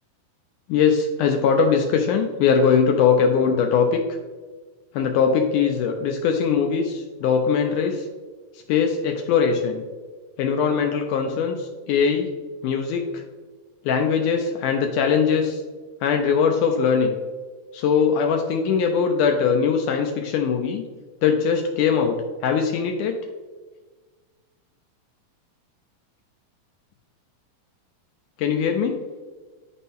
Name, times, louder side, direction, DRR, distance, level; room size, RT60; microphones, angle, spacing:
voice 1, 0.7-4.0 4.9-8.1 8.7-9.8 10.4-12.3 12.6-13.2 13.9-15.6 16.0-17.1 17.7-20.8 21.2-22.2 22.4-23.1 28.4-29.0, left 6 dB, 85° left, 4 dB, 1.8 m, -21 dB
11.0 x 4.2 x 3.5 m, 1.4 s
omnidirectional pair, 4.3 m